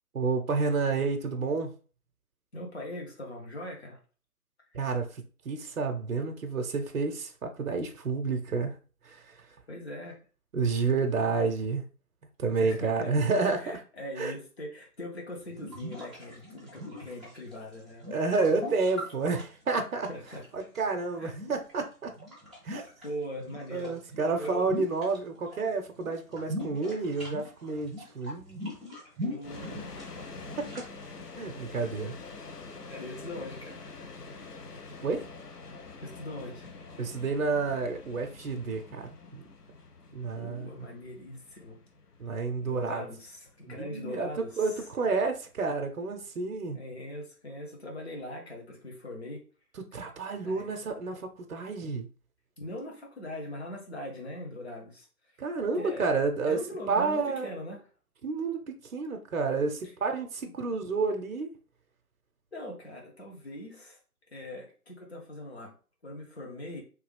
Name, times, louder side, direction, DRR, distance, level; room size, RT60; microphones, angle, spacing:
voice 1, 0.1-1.7 4.7-8.8 9.0-9.4 10.5-11.8 12.4-13.8 14.2-14.3 18.1-20.1 20.5-22.1 22.6-22.8 23.7-28.7 30.6-30.8 31.4-32.1 35.0-35.3 37.0-39.4 40.1-40.7 42.2-43.0 43.7-44.3 44.6-46.8 49.9-52.1 55.4-56.6 56.9-57.5 58.2-61.6, right 4 dB, 60° right, 0.6 m, -30 dB
voice 2, 2.5-4.0 9.7-10.2 12.6-13.1 13.6-18.2 20.1-20.4 21.2-21.4 23.0-23.9 24.4-24.8 29.2-30.2 32.9-34.0 36.0-36.7 40.4-41.8 42.6-44.9 46.7-49.4 50.4-50.7 52.6-55.1 55.7-56.1 56.5-57.9 62.5-64.0 64.3-65.7 66.0-66.8, left 1 dB, 45° left, 1.0 m, -41 dB
sound 1, 15.4-20.8 21.3-23.1 23.4-25.6 25.9-30.9, left 1 dB, ahead, 0.5 m, -41 dB
sound 2, 29.4-46.4, left 3 dB, 80° left, 0.8 m, -46 dB
3.1 x 2.3 x 3.2 m
figure-of-eight pair, 155°, 46 cm